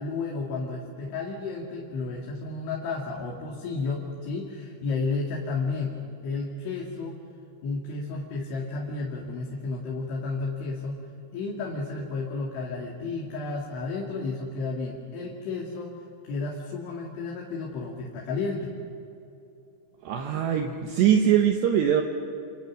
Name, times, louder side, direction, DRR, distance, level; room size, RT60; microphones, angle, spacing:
voice 1, 0.0-5.9 6.2-7.2 7.6-11.0 11.3-15.9 16.2-18.7, left 3 dB, 70° left, -2 dB, 4.6 m, -32 dB
voice 2, 20.0-22.0, right 9 dB, 70° right, 3 dB, 3.1 m, -22 dB
28.5 x 28.0 x 6.3 m, 2.7 s
omnidirectional pair, 5.7 m